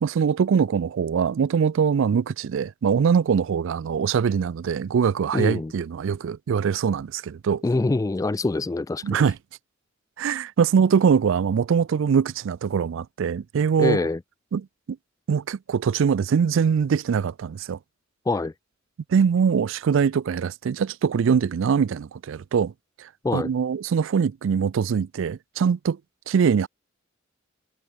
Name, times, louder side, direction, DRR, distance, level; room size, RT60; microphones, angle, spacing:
voice 1, 0.0-7.6 9.0-9.4 10.2-14.1 14.5-14.7 15.3-17.8 19.1-22.7 23.0-26.0 26.3-26.7, right 6 dB, 70° right, 0.4 m, -22 dB
voice 2, 5.3-5.7 7.6-9.2 13.8-14.2 18.3-18.5 23.2-23.5, left 2 dB, 15° left, 0.3 m, -24 dB
head